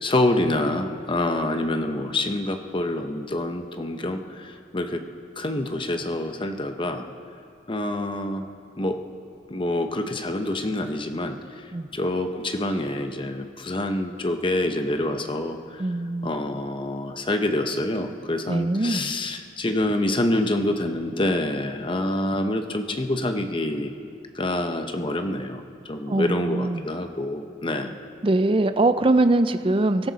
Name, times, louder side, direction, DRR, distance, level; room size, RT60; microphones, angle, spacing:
voice 1, 0.0-5.0 5.4-7.1 7.7-8.5 8.8-9.0 9.5-11.4 11.9-15.8 16.2-23.9 24.3-27.9, left 1 dB, 30° left, 6 dB, 0.9 m, -26 dB
voice 2, 15.8-16.3 18.5-19.1 26.1-26.9 28.2-30.1, right 2 dB, 30° right, 10 dB, 0.5 m, -22 dB
24.0 x 13.5 x 4.1 m, 2.4 s
head